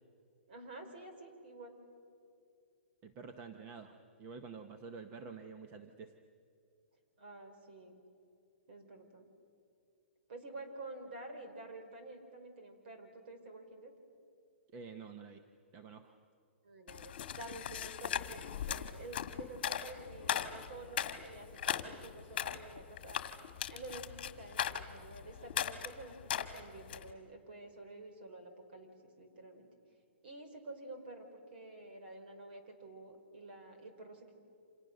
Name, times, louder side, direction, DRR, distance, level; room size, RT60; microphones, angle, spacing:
voice 1, 0.5-1.8 7.2-8.0 8.7-9.3 10.3-13.9 16.6-23.2 23.7-29.7 30.2-34.3, right 2 dB, 50° right, 5 dB, 4.8 m, -50 dB
voice 2, 3.0-6.2 14.7-15.4 15.7-16.1, right 5 dB, 20° right, 6 dB, 0.9 m, -49 dB
sound 1, 16.9-27.1, left 9 dB, 45° left, 1.7 m, -39 dB
29.5 x 27.5 x 6.7 m, 2.4 s
hypercardioid pair, 175°, 7 cm